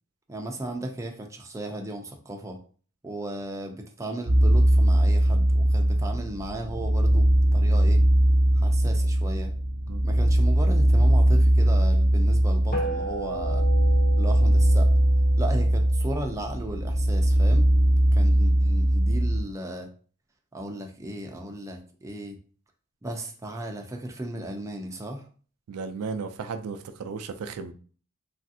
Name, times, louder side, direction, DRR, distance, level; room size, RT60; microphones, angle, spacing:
voice 1, 0.3-2.6 3.0-8.0 8.5-9.5 10.0-13.7 14.2-14.9 15.4-17.7 18.1-19.9 20.5-22.4 23.0-25.3, right 1 dB, 15° right, 0.4 m, -35 dB
sound 1, 4.3-19.4, right 1 dB, 50° right, 0.7 m, -20 dB
sound 2, 12.7-17.4, right 2 dB, 40° left, 0.7 m, -36 dB
voice 2, 25.7-27.7, right 5 dB, 80° right, 0.4 m, -34 dB
3.1 x 2.5 x 2.6 m
head